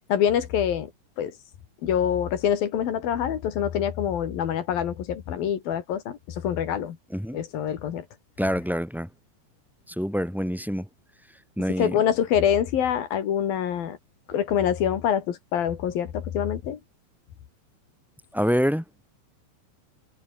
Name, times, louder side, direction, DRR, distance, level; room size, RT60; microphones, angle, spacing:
voice 1, 0.1-0.9 1.2-1.3 1.8-6.2 6.4-7.0 7.3-8.0 11.8-14.0 14.3-16.8, left 9 dB, 55° left, 3.4 m, -25 dB
voice 2, 8.4-9.1 10.0-10.8 11.6-12.0 18.3-18.8, equal, ahead, 4.3 m, -26 dB
omnidirectional pair, 5.5 m